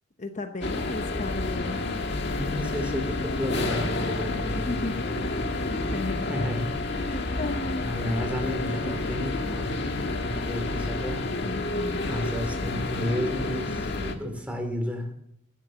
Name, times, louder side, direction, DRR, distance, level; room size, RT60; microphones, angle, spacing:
voice 1, 0.2-1.8 4.5-5.1 5.5-6.3 6.8-7.9 11.4-12.1, left 2 dB, 40° left, 6 dB, 0.9 m, -35 dB
sound 1, 0.6-14.1, left 2 dB, 60° left, 1.5 m, -30 dB
voice 2, 2.3-5.0 6.3-7.3 7.8-10.0 10.2-11.3 12.1-15.1, equal, 5° right, 3 dB, 2.8 m, -32 dB
13.0 x 10.5 x 6.9 m, 0.75 s
head